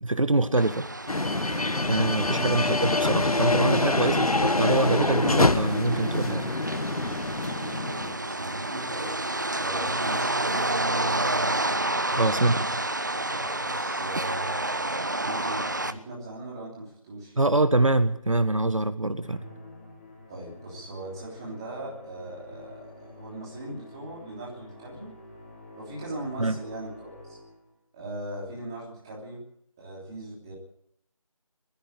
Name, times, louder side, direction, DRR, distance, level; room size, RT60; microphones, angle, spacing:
voice 1, 0.0-0.9 1.9-6.5 12.2-12.7 17.4-19.4 26.4-26.6, right 2 dB, 60° right, 11 dB, 1.6 m, -24 dB
sound 1, 0.6-15.9, right 2 dB, 30° right, 1.0 m, -30 dB
sound 2, 1.1-8.2, left 2 dB, 80° left, 1.3 m, -25 dB
voice 2, 8.0-9.3 9.5-10.6 12.0-12.8 13.2-14.7 15.2-17.4 20.3-25.1 25.8-27.4 27.9-29.4 29.8-30.5, right 1 dB, 5° right, -5 dB, 3.2 m, -39 dB
Musical instrument, 19.2-27.7, left 1 dB, 25° left, 7.5 m, -48 dB
21.5 x 15.5 x 8.8 m, 0.71 s
figure-of-eight pair, 175°, 18 cm